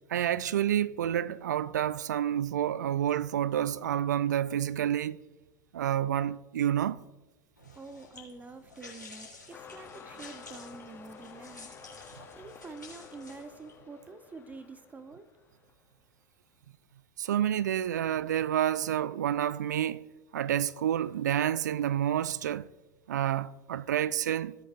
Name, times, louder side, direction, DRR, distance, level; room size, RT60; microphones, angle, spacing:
voice 1, 0.1-5.2 5.7-7.0 17.2-20.1 20.3-22.7 23.1-24.6, right 10 dB, 70° right, 0.4 m, -29 dB
sound 1, 7.6-13.8, left 3 dB, 85° left, 3.3 m, -51 dB
voice 2, 7.7-11.7 12.3-15.3, right 3 dB, 15° right, 0.7 m, -47 dB
sound 2, 9.5-15.9 16.6-16.7, left 6 dB, 20° left, 1.0 m, -51 dB
16.0 x 8.0 x 2.5 m
figure-of-eight pair, 85°, 10 cm